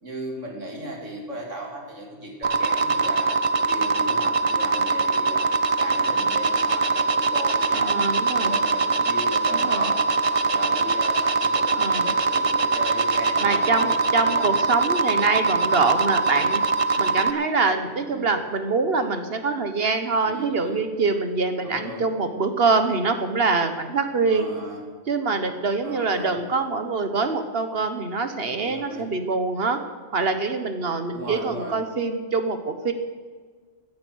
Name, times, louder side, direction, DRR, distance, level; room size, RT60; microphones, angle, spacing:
voice 1, 0.0-3.3 3.7-7.9 8.3-10.0 10.3-14.5 18.0-18.3 20.2-20.8 21.6-22.1 24.3-24.8 25.8-26.3 28.5-29.1 31.1-31.8, right 1 dB, 85° right, 0 dB, 3.4 m, -36 dB
sound 1, 2.4-17.3, right 4 dB, 35° right, 0.6 m, -22 dB
voice 2, 7.7-8.6 9.5-9.9 11.8-12.1 13.4-16.6 17.0-24.5 25.1-29.8 30.1-32.9, right 4 dB, 55° right, 8 dB, 1.4 m, -24 dB
17.0 x 10.5 x 6.3 m, 1.5 s
omnidirectional pair, 1.3 m